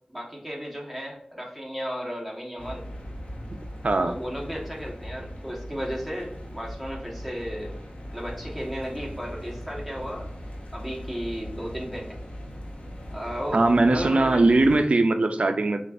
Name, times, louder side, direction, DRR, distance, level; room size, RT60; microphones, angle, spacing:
voice 1, 0.1-2.8 4.1-7.8 8.1-10.3 10.7-12.1 13.1-13.6 13.9-14.5, equal, ahead, -2 dB, 1.3 m, -34 dB
sound 1, 2.6-14.9, equal, 65° left, 0.9 m, -39 dB
voice 2, 13.5-15.8, right 2 dB, 65° right, 7 dB, 0.5 m, -20 dB
6.3 x 2.5 x 2.6 m, 0.73 s
wide cardioid pair, 60°, 2 cm